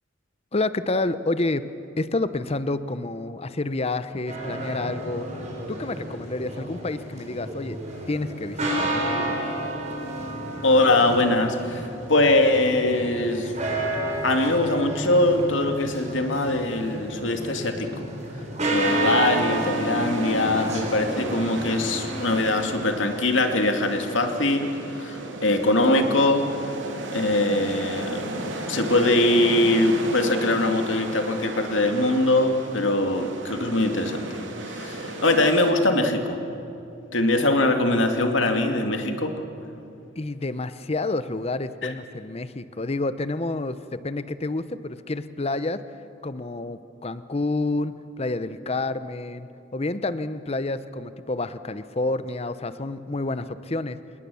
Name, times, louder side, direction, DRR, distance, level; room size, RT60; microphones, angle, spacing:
voice 1, 0.5-1.6 2.0-5.3 5.7-7.8 8.1-9.0 40.2-45.8 46.2-54.0, left 2 dB, 35° left, 13 dB, 0.8 m, -29 dB
sound 1, 4.3-22.7, right 1 dB, 40° right, 4.7 m, -30 dB
voice 2, 10.6-13.5 14.2-18.1 18.7-26.6 27.1-28.3 28.7-34.3 34.6-36.4 37.1-39.4 41.8-41.9, left 2 dB, 90° left, 4 dB, 2.3 m, -22 dB
sound 2, 18.8-35.7, right 2 dB, 80° right, 2.7 m, -34 dB
27.0 x 20.0 x 7.0 m, 2.7 s
head